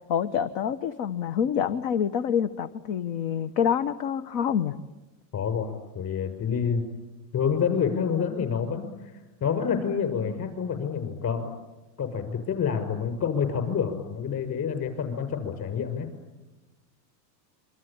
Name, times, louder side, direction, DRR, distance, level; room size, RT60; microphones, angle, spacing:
voice 1, 0.1-4.8, left 8 dB, 50° left, 11 dB, 1.3 m, -27 dB
voice 2, 5.3-6.8 7.3-11.5 12.0-16.1, left 7 dB, 35° left, 9 dB, 6.4 m, -28 dB
27.5 x 24.5 x 8.9 m, 1.1 s
supercardioid pair, 130°, 50 cm